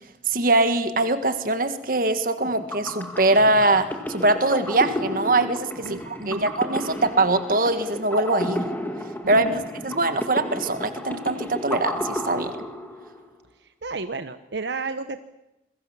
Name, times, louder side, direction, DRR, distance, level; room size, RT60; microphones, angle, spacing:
voice 1, 0.3-8.6 9.3-12.5, right 2 dB, 50° right, 9 dB, 1.7 m, -22 dB
sound 1, 2.4-13.2, left 1 dB, 10° left, 2.0 m, -32 dB
voice 2, 5.8-6.5 9.2-9.6 13.6-15.2, right 3 dB, 70° right, 9 dB, 1.0 m, -32 dB
27.5 x 22.0 x 7.4 m, 0.91 s
head